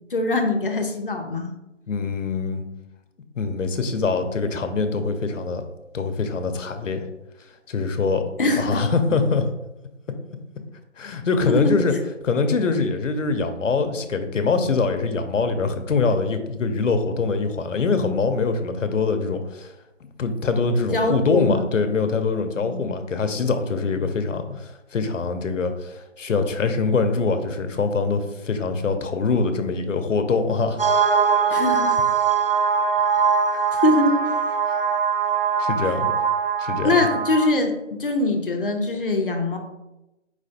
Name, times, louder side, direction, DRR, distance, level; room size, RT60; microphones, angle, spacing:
voice 1, 0.1-1.5 8.4-8.9 11.5-11.7 20.9-21.7 22.6-23.0 31.5-32.0 33.7-34.2 36.8-39.6, left 2 dB, 45° left, 3 dB, 0.6 m, -22 dB
voice 2, 1.9-2.6 3.4-5.7 5.9-7.1 7.7-8.3 8.6-9.5 11.0-11.9 12.2-19.7 20.2-30.8 33.5-33.6 34.7-34.8 35.6-36.1 36.6-37.1, left 4 dB, 80° left, 8 dB, 0.7 m, -23 dB
sound 1, 30.8-37.5, right 6 dB, 50° right, 0.5 m, -21 dB
4.7 x 3.3 x 2.7 m, 0.95 s
hypercardioid pair, 175°, 37 cm